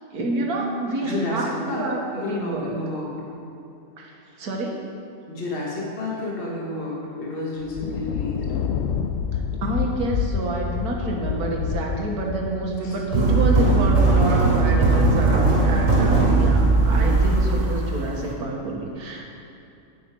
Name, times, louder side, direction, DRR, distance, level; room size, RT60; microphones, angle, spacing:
voice 1, 0.1-2.7 4.0-4.8 9.3-19.3, right 2 dB, 75° right, 0 dB, 1.9 m, -28 dB
voice 2, 1.0-1.8 2.1-3.1 5.3-8.5 12.8-13.0 16.7-17.2, left 2 dB, 35° left, -4 dB, 1.8 m, -31 dB
Thunder, 7.6-14.2, left 7 dB, 80° left, 0.5 m, -28 dB
sound 1, 13.1-18.3, right 3 dB, 55° right, 2.4 m, -18 dB
10.0 x 9.3 x 4.5 m, 2.7 s
omnidirectional pair, 1.7 m